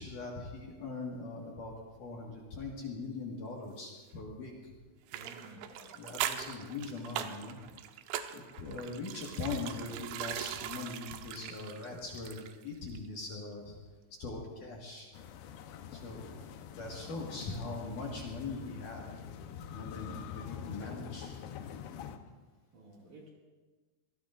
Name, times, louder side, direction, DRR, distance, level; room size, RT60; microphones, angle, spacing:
voice 1, 0.0-1.7 2.0-4.5 5.9-7.6 8.3-13.8 14.2-15.1 15.9-16.4 16.7-19.1 19.7-21.4, left 3 dB, 55° left, -2 dB, 2.6 m, -41 dB
voice 2, 5.1-5.9 22.7-23.3, right 1 dB, 50° right, -3 dB, 3.2 m, -53 dB
sound 1, 5.1-12.7 13.0-13.1, right 11 dB, 85° right, 3.0 m, -40 dB
sound 2, 15.1-22.2, left 8 dB, 75° left, 2.8 m, -45 dB
25.0 x 18.5 x 2.5 m, 1.3 s
omnidirectional pair, 5.3 m